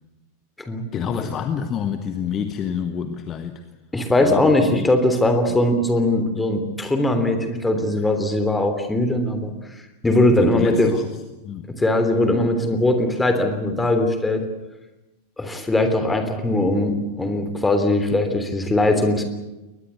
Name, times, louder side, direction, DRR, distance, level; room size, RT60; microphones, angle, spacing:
voice 1, 0.9-3.6 4.2-4.9 10.4-11.1 11.4-11.6 16.5-16.7, left 8 dB, 30° left, 9 dB, 1.4 m, -27 dB
voice 2, 3.9-9.5 10.0-10.9 11.8-14.4 15.4-19.2, left 1 dB, 10° left, 7 dB, 3.3 m, -20 dB
22.5 x 20.0 x 8.4 m, 1.0 s
figure-of-eight pair, 90°, 0 cm